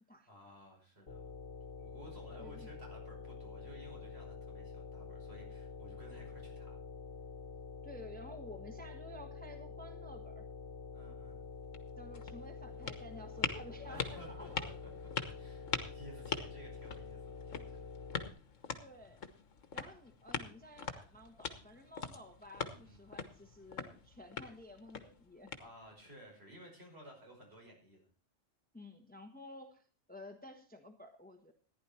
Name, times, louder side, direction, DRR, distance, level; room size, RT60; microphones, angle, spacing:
voice 1, 0.3-1.4 1.8-6.8 10.9-11.4 13.9-14.9 15.3-17.8 18.3-18.4 19.1-19.2 22.6-23.0 25.6-28.1, equal, 50° right, 0 dB, 5.8 m, -55 dB
sound 1, 1.1-18.3, left 4 dB, 50° left, 1.7 m, -47 dB
voice 2, 2.4-2.7 7.8-10.4 12.0-14.7 18.7-19.2 19.7-25.5 28.7-31.5, left 1 dB, 5° left, 6 dB, 1.2 m, -52 dB
sound 2, 11.6-26.1, left 6 dB, 75° left, 1.6 m, -43 dB
14.5 x 10.5 x 4.3 m, 0.38 s
omnidirectional pair, 1.3 m